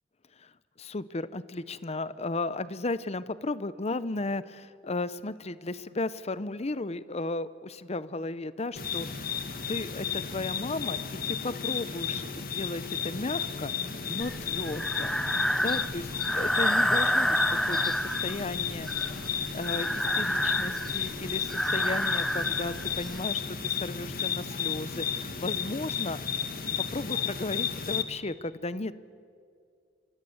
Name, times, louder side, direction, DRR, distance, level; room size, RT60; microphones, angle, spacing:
voice 1, 0.8-9.4 9.7-11.0 11.3-13.7 14.1-15.2 15.6-16.0 16.3-26.4 26.8-29.0, left 2 dB, 35° left, 15 dB, 0.8 m, -35 dB
sound 1, 8.8-28.0, left 7 dB, 50° left, 1.7 m, -33 dB
Breathing, 14.2-23.2, equal, ahead, 0.7 m, -29 dB
27.5 x 25.0 x 8.0 m, 2.3 s
head